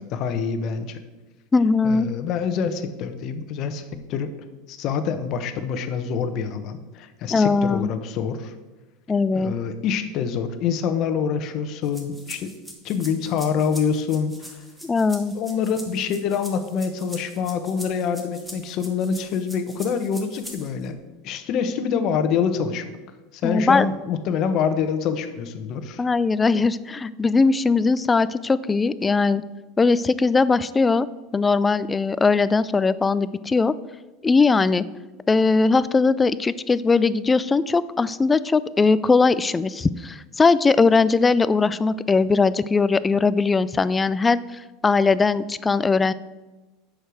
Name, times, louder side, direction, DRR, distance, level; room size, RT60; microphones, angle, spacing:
voice 1, 0.1-1.0 1.8-4.3 4.7-8.5 9.3-12.5 12.8-14.6 15.3-21.0 21.2-22.8 23.3-26.1, left 6 dB, 45° left, 9 dB, 1.0 m, -26 dB
voice 2, 1.5-2.1 7.3-7.9 9.1-9.6 14.8-15.3 23.4-23.9 26.0-29.4 29.8-31.1 31.3-33.7 34.2-34.8 35.3-44.4 44.8-46.1, left 4 dB, 15° left, 17 dB, 0.3 m, -20 dB
sound 1, 11.8-20.9, equal, 5° right, 1.5 m, -42 dB
8.0 x 6.5 x 6.3 m, 1.2 s
supercardioid pair, 135°, 0 cm